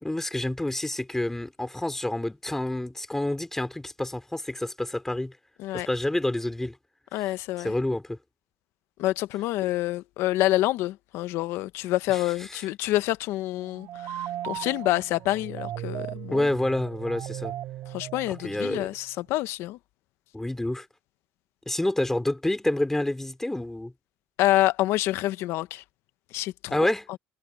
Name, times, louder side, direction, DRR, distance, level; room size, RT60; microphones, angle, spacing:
voice 1, 0.0-5.3 5.7-6.8 7.2-7.3 7.6-8.2 12.1-12.2 12.5-12.6 16.3-17.5 18.3-18.9 20.3-20.9 21.7-23.9 26.7-27.1, left 1 dB, 10° left, 3.0 m, -28 dB
voice 2, 7.1-7.7 9.0-16.5 17.9-19.8 24.4-25.8 26.3-26.8, left 16 dB, 80° left, 1.1 m, -27 dB
sound 1, 13.6-19.1, right 12 dB, 65° right, 2.9 m, -37 dB
supercardioid pair, 90°, 4 cm